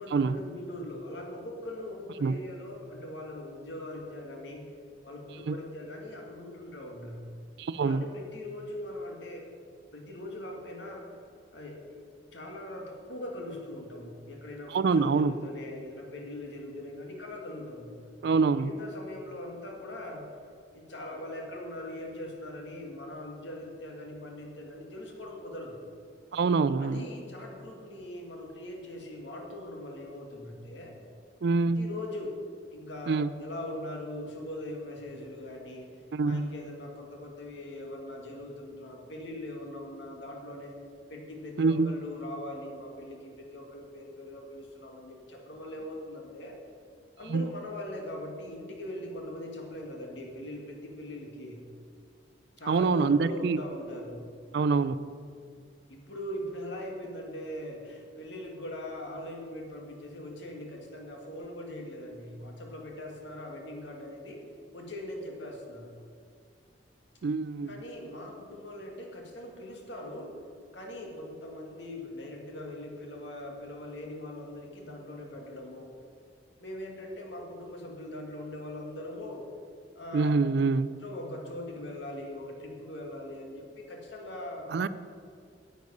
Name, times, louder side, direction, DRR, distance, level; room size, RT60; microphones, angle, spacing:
voice 1, 0.0-4.7 5.0-7.2 7.8-9.5 9.9-11.1 11.5-11.8 12.3-18.0 18.6-20.3 20.7-25.8 26.8-31.0 31.6-32.4 32.7-35.9 36.3-40.7 41.1-46.6 47.2-51.6 52.6-54.3 55.9-64.4 64.7-65.9 67.7-70.4 70.7-75.9 76.6-79.4 80.0-80.6 81.0-84.7, left 1 dB, 80° left, 1 dB, 1.9 m, -41 dB
voice 2, 7.6-8.0 14.7-15.3 18.2-18.7 26.3-27.1 31.4-31.9 33.1-33.3 36.1-36.5 41.6-41.9 47.3-47.5 52.7-53.6 54.5-55.0 67.2-67.7 80.1-80.9 84.7-84.9, right 4 dB, 65° right, 15 dB, 0.4 m, -25 dB
9.6 x 8.0 x 5.4 m, 2.2 s
head